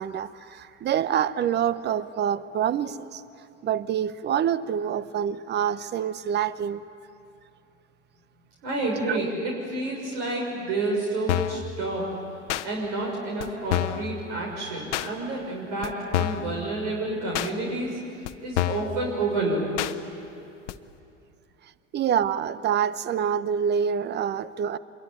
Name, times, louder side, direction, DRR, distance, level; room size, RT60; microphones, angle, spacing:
voice 1, 0.0-3.2 3.6-6.8 9.1-9.2 21.9-24.8, right 8 dB, 25° right, 16 dB, 0.9 m, -26 dB
voice 2, 8.6-12.0 12.6-17.9 18.4-19.9, right 2 dB, 55° right, -1 dB, 6.3 m, -29 dB
sound 1, 11.3-11.6 12.5-12.7 13.4-13.5 13.7-14.1 14.9-15.1 15.8-16.5 17.3-17.5 18.2-18.3 18.6-18.9 19.8-19.9 20.7-20.8, left 15 dB, 65° left, 1.1 m, -26 dB
26.0 x 22.5 x 9.8 m, 2.8 s
hypercardioid pair, 90°, 38 cm